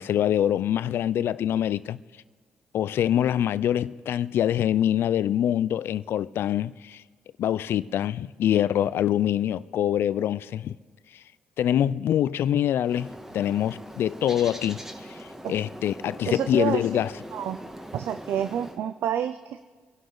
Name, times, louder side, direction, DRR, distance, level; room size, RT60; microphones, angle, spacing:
voice 1, 0.0-2.0 2.7-7.0 7.4-10.7 11.6-14.8 15.1-15.2 15.5-17.1, left 10 dB, 70° left, 0.4 m, -25 dB
Bird, 12.8-18.8, equal, 10° right, 1.7 m, -41 dB
voice 2, 16.3-16.8 17.3-17.6 17.9-19.6, right 10 dB, 70° right, 0.5 m, -28 dB
25.5 x 11.5 x 3.9 m
supercardioid pair, 50°, 4 cm